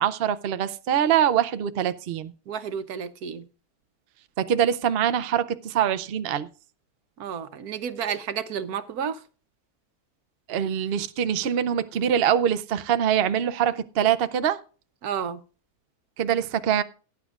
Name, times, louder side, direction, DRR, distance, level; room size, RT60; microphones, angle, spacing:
voice 1, 0.0-2.3 4.4-6.5 10.5-14.6 16.2-16.8, right 9 dB, 55° right, 0.7 m, -24 dB
voice 2, 2.5-3.4 7.2-9.2 15.0-15.4, right 7 dB, 80° right, 1.4 m, -31 dB
17.5 x 9.4 x 2.4 m
omnidirectional pair, 1.6 m